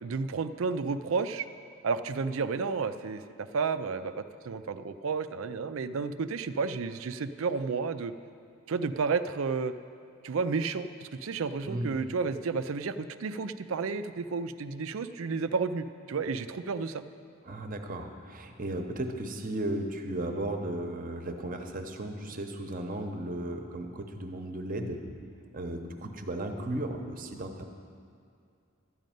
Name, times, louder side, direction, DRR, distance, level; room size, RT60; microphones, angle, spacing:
voice 1, 0.0-1.5 1.8-8.1 8.7-9.7 10.2-17.0, right 4 dB, 75° right, 11 dB, 0.4 m, -31 dB
voice 2, 11.7-12.0 17.5-25.0 25.5-27.7, right 1 dB, 40° right, 5 dB, 0.8 m, -35 dB
12.5 x 5.3 x 9.1 m, 2.4 s
head